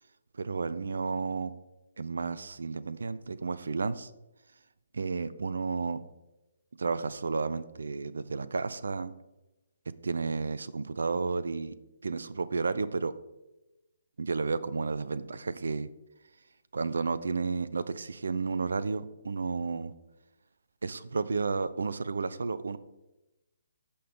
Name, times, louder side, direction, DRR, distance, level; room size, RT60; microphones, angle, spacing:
voice 1, 0.3-1.5 2.0-4.1 4.9-6.0 6.8-9.1 10.0-11.7 12.0-13.1 14.2-15.9 16.7-19.9 20.8-22.8, right 4 dB, 60° right, 16 dB, 0.5 m, -32 dB
15.0 x 5.7 x 3.7 m, 0.98 s
figure-of-eight pair, 135°, 0 cm